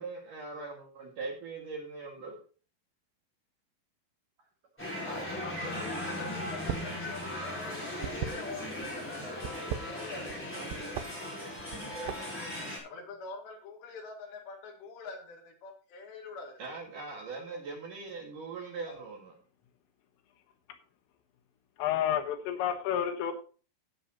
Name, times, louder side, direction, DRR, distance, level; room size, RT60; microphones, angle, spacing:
voice 1, 0.0-2.4 10.5-10.9 16.6-19.3, right 4 dB, 55° right, 0 dB, 2.8 m, -41 dB
sound 1, 4.8-12.8, left 1 dB, 5° left, 3.3 m, -38 dB
voice 2, 5.1-10.5 12.8-16.6 18.9-19.0, left 4 dB, 65° left, 1 dB, 4.1 m, -45 dB
sound 2, 6.5-7.0 7.3-8.9 9.4-10.4 10.7-11.1 11.6-12.4, right 9 dB, 85° right, 2.4 m, -37 dB
voice 3, 21.8-23.3, left 10 dB, 85° left, 5 dB, 3.9 m, -30 dB
16.5 x 7.2 x 2.9 m, 0.38 s
omnidirectional pair, 5.7 m